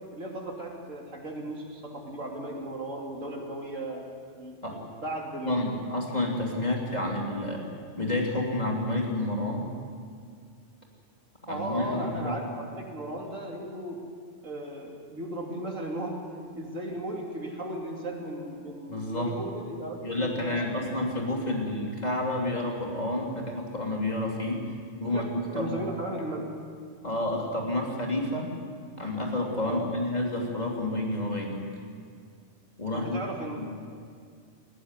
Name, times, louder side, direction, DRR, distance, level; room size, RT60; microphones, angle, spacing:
voice 1, 0.1-4.1 4.4-5.6 11.5-14.0 14.4-16.2 16.5-20.9 25.0-25.2 25.5-26.4 29.6-29.9 32.9-33.7, right 1 dB, 85° right, 0 dB, 3.4 m, -36 dB
voice 2, 5.4-7.7 8.0-9.7 11.4-12.4 18.9-19.3 20.0-24.7 25.0-25.8 27.0-28.5 29.0-31.6 32.8-33.2 33.6-33.7, left 1 dB, 35° left, -1 dB, 3.2 m, -30 dB
20.0 x 15.0 x 9.7 m, 2.2 s
omnidirectional pair, 1.3 m